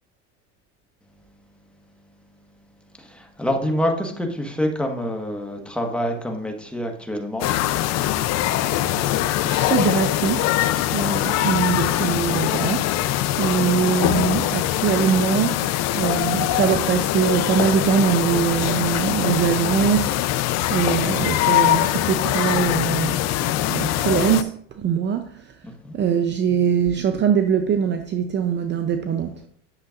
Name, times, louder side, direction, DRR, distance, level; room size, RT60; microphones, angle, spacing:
voice 1, 3.0-7.5 25.8-25.9, equal, 5° left, 1.4 m, -27 dB
sound 1, 7.4-24.4, left 13 dB, 45° left, 0.6 m, -22 dB
voice 2, 9.4-13.1 13.4-15.7 15.9-20.4 20.7-25.6 25.9-29.4, right 7 dB, 30° right, 0.6 m, -22 dB
11.0 x 6.6 x 2.5 m
supercardioid pair, 115°, 36 cm